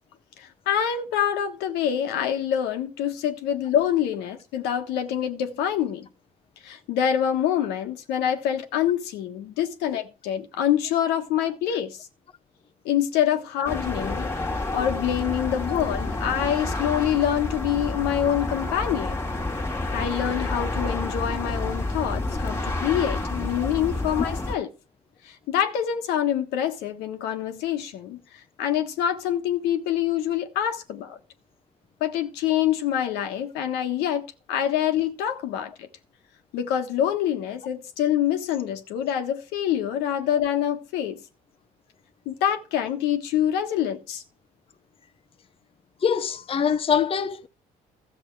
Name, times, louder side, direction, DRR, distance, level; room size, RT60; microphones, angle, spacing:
voice 1, 0.4-6.1 6.6-12.0 12.8-14.3 14.7-19.2 19.9-24.7 25.2-28.2 28.6-31.2 32.0-35.9 36.5-41.2 42.2-44.2, left 10 dB, 85° left, 1.4 m, -26 dB
sound 1, 13.7-24.6, left 2 dB, 15° left, 1.7 m, -29 dB
voice 2, 15.7-16.1 24.2-24.3 46.0-47.5, left 7 dB, 35° left, 0.7 m, -25 dB
13.5 x 7.0 x 4.7 m
supercardioid pair, 85°, 17 cm